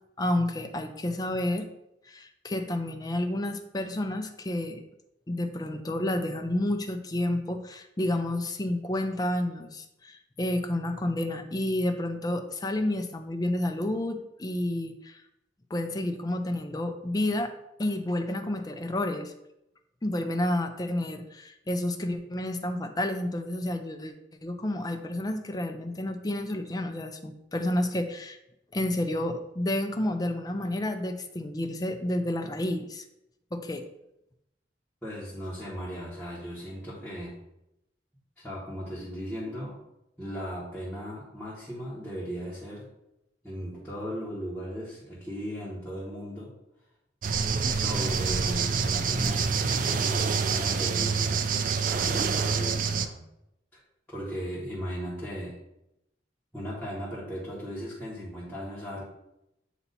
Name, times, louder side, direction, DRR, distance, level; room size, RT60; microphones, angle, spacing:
voice 1, 0.2-1.7 2.1-4.8 5.3-15.2 15.7-17.5 17.8-19.3 20.0-24.1 24.4-28.4 28.7-33.0 33.5-33.8, left 1 dB, 20° left, 6 dB, 0.5 m, -30 dB
voice 2, 35.0-37.3 38.4-39.7 40.2-42.8 43.4-46.5 47.7-51.4 51.9-53.2 53.7-53.8 54.1-55.5 56.5-59.0, equal, 5° left, -10 dB, 1.4 m, -37 dB
sound 1, 47.2-53.1, right 5 dB, 45° right, 0.4 m, -26 dB
7.9 x 2.9 x 4.1 m, 0.86 s
head